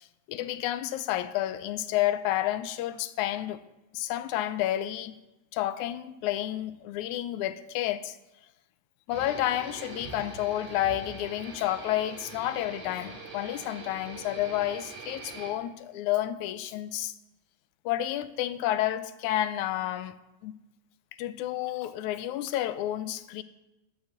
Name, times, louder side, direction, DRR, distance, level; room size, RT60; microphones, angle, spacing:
voice 1, 0.0-3.6 3.9-5.2 5.5-8.2 9.1-17.1 17.9-20.2 20.4-20.5 21.2-23.4, left 13 dB, 85° left, 2.0 m, -30 dB
sound 1, 9.1-15.5, right 4 dB, 75° right, 4.3 m, -43 dB
11.5 x 7.8 x 8.1 m
omnidirectional pair, 3.4 m